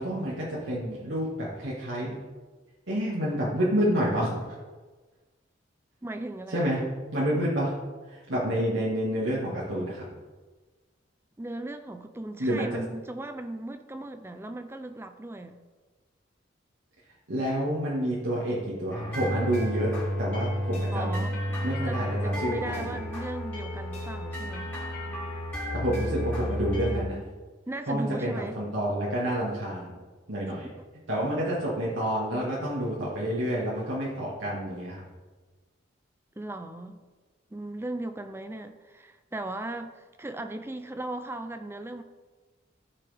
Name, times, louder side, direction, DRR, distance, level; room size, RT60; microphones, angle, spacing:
voice 1, 0.0-2.1 2.9-4.5 6.5-6.8 7.1-7.7 8.1-10.1 12.4-12.8 17.3-21.2 21.6-23.0 25.7-27.2 27.9-29.9 30.3-30.7 31.1-35.0, equal, 85° right, -7 dB, 2.0 m, -29 dB
voice 2, 6.0-6.7 11.4-15.6 20.9-21.3 21.8-24.7 27.7-28.6 36.4-37.0 37.5-42.0, right 2 dB, 15° right, 8 dB, 0.4 m, -37 dB
sound 1, 18.9-27.0, equal, 10° left, 3.1 m, -31 dB
15.0 x 5.9 x 3.5 m, 1.3 s
head